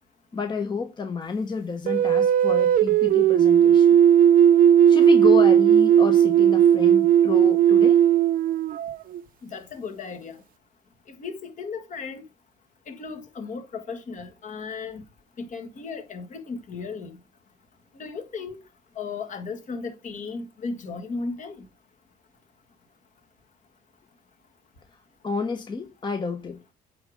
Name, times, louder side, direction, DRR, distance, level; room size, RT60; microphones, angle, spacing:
voice 1, 0.3-4.0 4.9-8.0 25.2-26.7, left 5 dB, 25° left, 0.9 m, -30 dB
sound 1, 1.9-9.2, right 9 dB, 55° right, 0.5 m, -17 dB
voice 2, 9.4-10.4 11.1-12.2 12.9-15.0 15.4-17.2 18.0-18.6 18.9-21.6, left 4 dB, 50° left, 1.7 m, -35 dB
8.9 x 3.7 x 5.1 m
cardioid pair, 110°, 17 cm